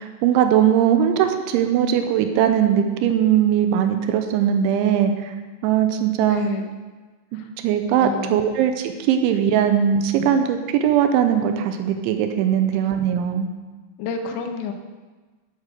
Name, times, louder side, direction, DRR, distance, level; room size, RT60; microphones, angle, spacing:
voice 1, 0.0-5.3 5.6-6.4 7.3-13.5, right 9 dB, 90° right, 7 dB, 3.2 m, -20 dB
voice 2, 6.3-6.7 7.3-7.5 8.0-8.4 14.0-14.7, left 5 dB, 80° left, 5 dB, 3.2 m, -29 dB
9.3 x 8.2 x 6.6 m, 1.3 s
omnidirectional pair, 5.2 m